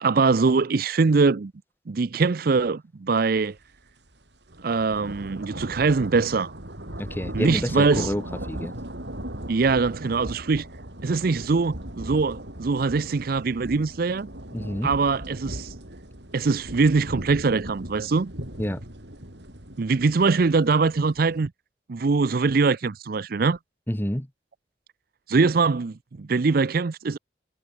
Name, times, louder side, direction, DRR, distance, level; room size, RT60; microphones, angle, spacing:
voice 1, 0.0-1.5 1.9-3.6 4.6-6.5 7.3-8.1 9.5-10.7 11.0-14.3 14.8-15.7 16.3-18.3 19.8-21.5 21.9-23.6 25.3-27.2, right 4 dB, 55° right, 0.5 m, -22 dB
sound 1, 3.6-3.8 4.1-21.4, right 1 dB, 75° right, 6.0 m, -38 dB
voice 2, 7.0-8.7 14.5-14.9 18.6-18.8 23.9-24.3, equal, 10° left, 1.5 m, -29 dB
head